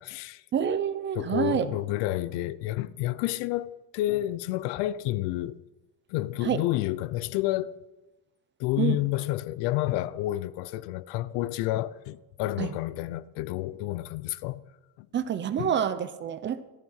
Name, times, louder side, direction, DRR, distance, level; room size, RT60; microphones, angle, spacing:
voice 1, 0.0-0.4 1.1-5.6 6.1-7.8 8.6-14.6 15.0-15.1 15.6-15.7, left 16 dB, 65° left, 0.7 m, -30 dB
voice 2, 0.5-1.7 6.4-6.6 8.8-9.0 12.6-12.7 15.1-16.7, right 8 dB, 25° right, 0.6 m, -27 dB
16.5 x 14.0 x 5.7 m
cardioid pair, 170°, 45 cm